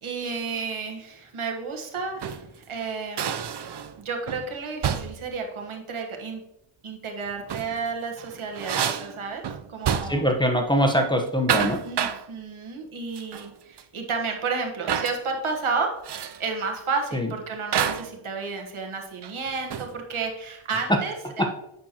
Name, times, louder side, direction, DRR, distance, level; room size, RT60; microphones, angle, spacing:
voice 1, 0.0-3.3 4.0-6.4 6.8-9.4 9.7-10.3 11.8-16.0 16.4-21.5, right 4 dB, 85° right, 2 dB, 1.4 m, -31 dB
sound 1, 2.0-2.5 3.2-4.0 4.3-4.5 4.8-5.3 7.3-7.8 8.2-10.4 10.7-10.9 11.3-12.3 13.2-13.5 13.8-13.9 14.9-15.2 16.0-16.4 17.7-18.2 19.2-20.0, right 8 dB, 55° right, 0.6 m, -29 dB
voice 2, 10.1-11.8 17.1-17.3, equal, 10° left, 3 dB, 1.0 m, -22 dB
8.3 x 6.4 x 2.9 m, 0.83 s
wide cardioid pair, 80°, 48 cm